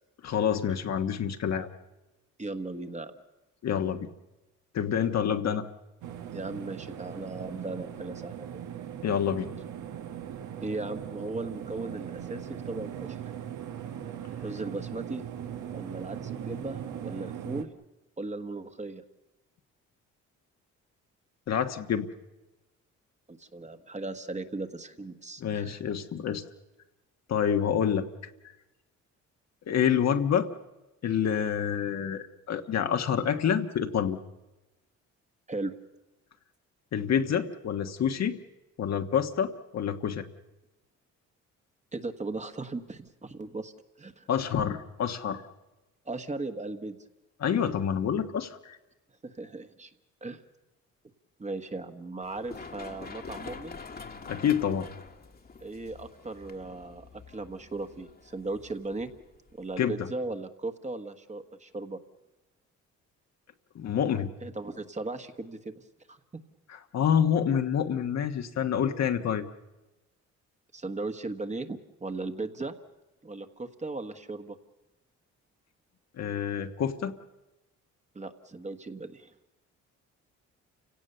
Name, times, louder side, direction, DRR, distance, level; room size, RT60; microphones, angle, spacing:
voice 1, 0.2-1.7 3.6-4.1 4.7-5.6 9.0-9.5 21.5-22.1 25.4-26.4 27.3-28.0 29.7-30.5 31.0-34.2 36.9-38.4 38.8-40.3 44.3-45.4 47.4-48.8 54.2-54.9 59.8-60.1 63.7-64.3 66.7-69.5 76.2-77.1, left 8 dB, 60° left, 7 dB, 1.4 m, -27 dB
voice 2, 2.4-3.1 6.3-8.5 10.6-13.2 14.4-15.2 15.7-17.7 18.2-19.0 23.4-25.8 35.5-35.7 41.9-43.7 44.0-44.3 46.0-47.0 49.2-49.9 50.2-50.4 51.4-53.8 55.6-59.1 59.6-62.0 64.4-65.8 66.1-66.2 70.7-72.7 73.2-74.6 78.1-79.3, right 2 dB, 25° right, 7 dB, 1.4 m, -37 dB
sound 1, 6.0-17.6, right 9 dB, 75° right, 1.5 m, -39 dB
Run, 52.2-59.8, left 4 dB, 30° left, 1.6 m, -46 dB
29.0 x 17.0 x 6.8 m, 1.0 s
cardioid pair, 90°, 30 cm